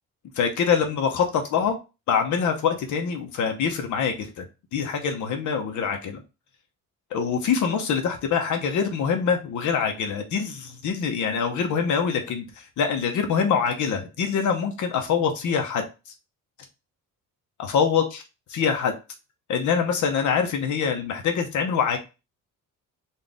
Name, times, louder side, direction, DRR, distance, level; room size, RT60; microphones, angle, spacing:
voice 1, 0.4-1.7 2.1-4.4 4.7-6.2 7.1-15.8 17.6-18.2 18.5-18.9 19.5-22.0, left 6 dB, 60° left, 5 dB, 0.9 m, -24 dB
4.1 x 2.5 x 3.5 m, 0.28 s
cardioid pair, 160°, 33 cm